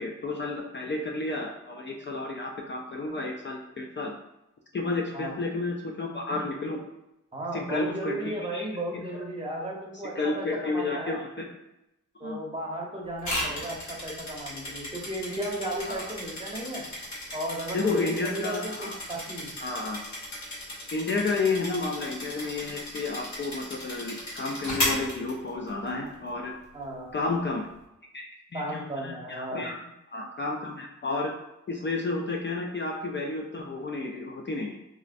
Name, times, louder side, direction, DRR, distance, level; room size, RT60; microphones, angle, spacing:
voice 1, 0.0-4.1 4.7-6.8 7.5-8.7 8.9-9.0 10.2-11.5 12.2-12.4 15.9-16.0 17.7-19.0 19.6-20.0 20.9-26.5 27.1-27.7 28.1-28.2 28.5-28.6 29.0-29.8 30.1-31.3 31.7-34.8, left 3 dB, 35° left, 0 dB, 0.4 m, -31 dB
voice 2, 7.3-11.2 12.2-16.9 17.3-19.5 26.7-27.1 28.5-29.6, right 1 dB, 20° right, -2 dB, 0.8 m, -35 dB
sound 1, 13.2-25.9, left 1 dB, 60° left, 1.2 m, -35 dB
3.1 x 2.4 x 2.5 m, 0.87 s
cardioid pair, 80°, 32 cm